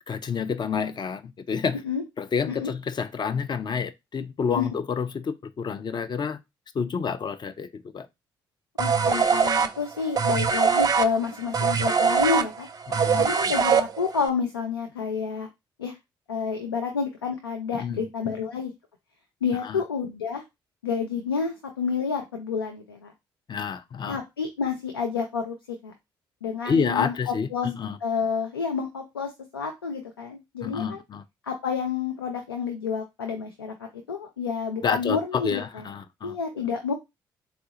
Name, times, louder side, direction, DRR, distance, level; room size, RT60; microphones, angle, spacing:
voice 1, 0.1-1.8 2.2-6.4 6.7-8.1 12.9-13.3 17.7-18.4 19.6-19.8 23.5-24.2 26.6-28.0 30.6-31.2 34.8-36.6, left 6 dB, 40° left, 0.5 m, -29 dB
voice 2, 8.8-12.7 13.2-15.5 15.8-16.0 16.3-18.7 19.4-20.4 20.8-23.1 24.1-25.9 26.4-27.7 28.0-31.0 31.4-35.8 36.2-36.9, left 5 dB, 90° left, 0.4 m, -29 dB
sound 1, 8.8-14.3, right 6 dB, 30° right, 0.5 m, -22 dB
4.1 x 2.2 x 2.8 m
figure-of-eight pair, 45°, 12 cm